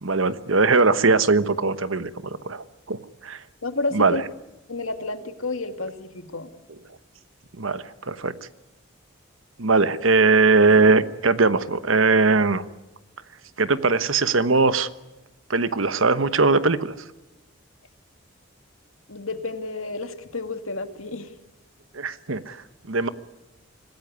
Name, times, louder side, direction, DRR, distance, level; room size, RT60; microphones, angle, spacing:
voice 1, 0.0-3.4 3.9-4.2 7.6-8.3 9.6-12.6 13.6-14.9 15.5-16.9 21.9-22.6 22.9-23.1, right 3 dB, 75° right, 13 dB, 1.2 m, -20 dB
voice 2, 3.6-4.2 4.7-6.5 19.1-21.3, left 3 dB, 80° left, 8 dB, 2.2 m, -30 dB
25.5 x 16.0 x 9.5 m, 1.0 s
head